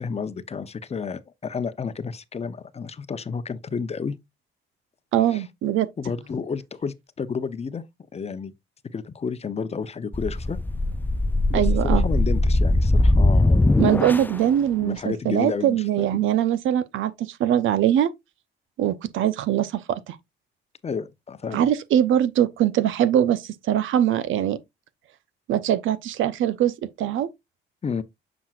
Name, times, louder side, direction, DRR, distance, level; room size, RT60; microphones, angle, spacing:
voice 1, 0.0-4.1 5.3-5.5 6.0-7.8 8.1-8.5 8.9-10.6 11.5-13.7 14.8-16.1 20.8-21.7 27.8-28.0, left 5 dB, 30° left, 0.7 m, -31 dB
voice 2, 5.1-5.9 11.5-12.0 13.8-18.1 18.8-20.2 21.5-24.6 25.5-27.3, right 11 dB, 80° right, 0.7 m, -22 dB
sound 1, 10.1-14.5, left 2 dB, 10° left, 0.3 m, -20 dB
7.3 x 6.1 x 2.4 m
cardioid pair, 90°, 20 cm